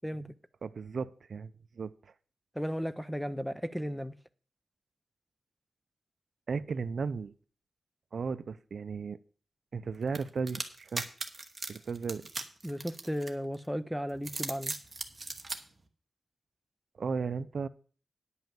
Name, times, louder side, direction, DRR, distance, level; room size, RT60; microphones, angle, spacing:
voice 1, 0.6-2.1 6.5-7.3 8.1-9.2 9.7-11.1 11.7-12.3 17.0-17.7, right 5 dB, 55° right, 0.5 m, -35 dB
voice 2, 2.6-4.1 12.6-14.7, equal, ahead, 0.5 m, -35 dB
sound 1, 10.1-13.6 14.1-15.6, right 3 dB, 25° right, 1.2 m, -38 dB
10.0 x 5.6 x 7.5 m
wide cardioid pair, 150°, 0 cm